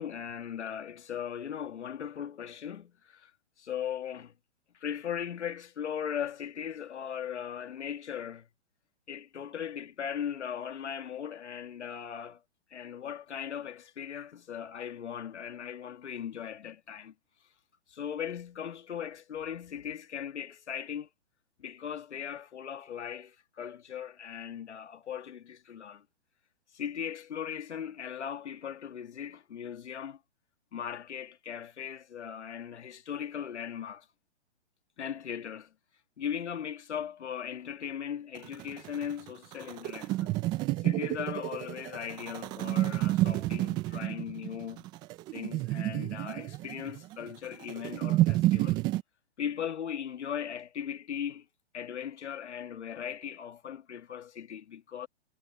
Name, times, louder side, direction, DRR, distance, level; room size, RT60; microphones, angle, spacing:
voice 1, 0.0-3.3 3.6-4.3 4.8-8.5 9.1-12.4 12.7-17.1 17.9-21.1 21.6-26.0 26.7-30.2 30.7-34.1 35.0-35.7 36.2-40.4 40.8-44.8 45.3-48.8 49.4-51.4 51.7-55.1, left 8 dB, 75° left, 2.3 m, -38 dB
sound 1, 38.3-49.0, right 17 dB, 15° right, 0.4 m, -30 dB
hypercardioid pair, 135°, 35 cm